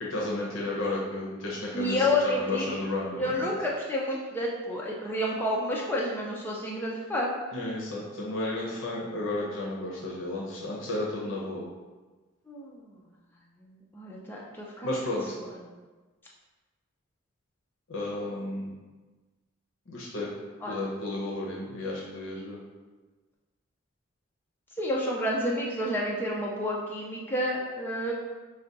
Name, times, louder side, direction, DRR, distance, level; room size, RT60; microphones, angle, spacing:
voice 1, 0.0-3.3 7.5-11.6 14.8-15.4 17.9-18.7 19.9-20.3 20.7-22.6, left 2 dB, 70° left, -4 dB, 0.7 m, -32 dB
voice 2, 1.7-2.7 3.2-7.3 12.5-13.0 13.6-14.9 15.4-15.6 20.6-20.7 24.8-28.1, left 1 dB, 10° left, -4 dB, 0.5 m, -30 dB
4.8 x 2.2 x 3.9 m, 1.3 s
head